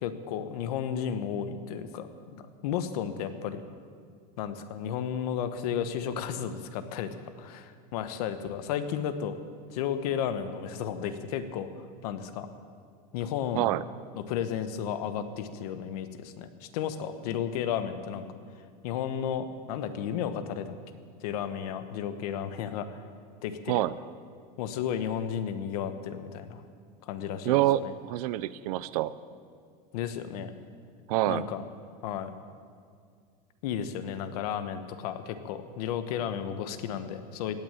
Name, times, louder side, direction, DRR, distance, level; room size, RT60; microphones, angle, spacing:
voice 1, 0.0-3.6 4.4-7.1 7.4-9.4 9.7-12.5 13.1-13.7 14.1-18.3 18.8-20.7 21.2-23.0 23.4-23.8 24.6-26.6 27.1-27.9 29.9-30.5 31.3-31.6 32.0-32.3 33.6-37.6, left 8 dB, 70° left, 10 dB, 1.0 m, -33 dB
voice 2, 27.4-29.1 31.1-31.5, right 15 dB, 65° right, 17 dB, 0.5 m, -26 dB
17.0 x 6.5 x 8.9 m, 2.1 s
supercardioid pair, 165°, 20 cm